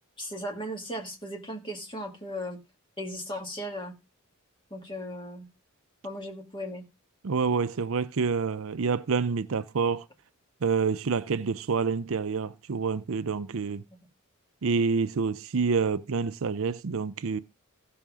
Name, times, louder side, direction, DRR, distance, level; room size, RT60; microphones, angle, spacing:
voice 1, 0.2-2.6 3.0-3.9 4.7-5.5 6.0-6.8, equal, 25° left, 2.0 m, -36 dB
voice 2, 7.2-10.1 10.6-13.8 14.6-17.4, right 5 dB, 70° right, 0.6 m, -27 dB
15.5 x 5.8 x 3.6 m
head